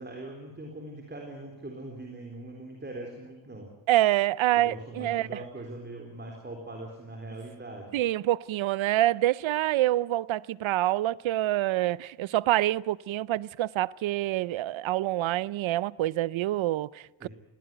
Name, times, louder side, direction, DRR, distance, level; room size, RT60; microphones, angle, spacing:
voice 1, 0.0-3.7 4.5-8.0 17.2-17.3, right 2 dB, 20° right, 4.0 m, -41 dB
voice 2, 3.9-5.4 7.9-17.3, right 15 dB, 70° right, 0.6 m, -26 dB
20.5 x 17.0 x 9.2 m
cardioid pair, 105°, 48 cm